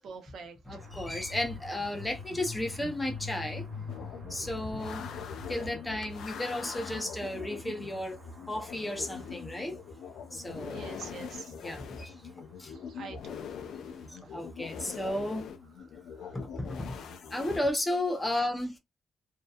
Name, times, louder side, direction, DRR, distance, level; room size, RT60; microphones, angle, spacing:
voice 1, 0.0-0.9 10.7-11.5 12.7-13.4 14.3-14.4 16.1-16.4 18.3-18.5, right 5 dB, 65° right, 0.7 m, -46 dB
voice 2, 0.7-3.6 4.3-5.1 5.5-8.2 8.5-9.8 10.3-10.8 11.6-12.1 12.6-12.7 14.1-15.5 16.3-16.9 17.3-18.8, left 1 dB, 15° left, 0.6 m, -33 dB
sound 1, 0.7-14.6, left 4 dB, 45° right, 1.0 m, -46 dB
sound 2, 3.9-17.6, left 6 dB, 75° left, 0.5 m, -43 dB
2.7 x 2.2 x 2.3 m
cardioid pair, 125°, 0 cm